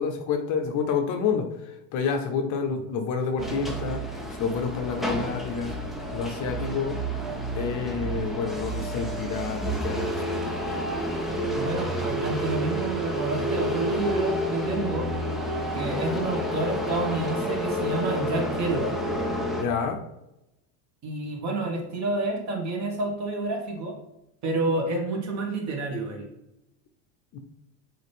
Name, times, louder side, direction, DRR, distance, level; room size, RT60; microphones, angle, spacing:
voice 1, 0.0-4.0 4.4-5.7 6.1-7.0 7.5-10.2 19.6-20.0 27.3-27.4, left 6 dB, 40° left, 5 dB, 0.7 m, -28 dB
sound 1, 3.4-19.6, equal, ahead, 0.3 m, -30 dB
voice 2, 11.5-15.1 15.7-18.9 21.0-24.0 24.4-26.3, right 2 dB, 40° right, 1 dB, 1.7 m, -29 dB
6.6 x 4.3 x 3.5 m, 0.89 s
supercardioid pair, 140°, 45 cm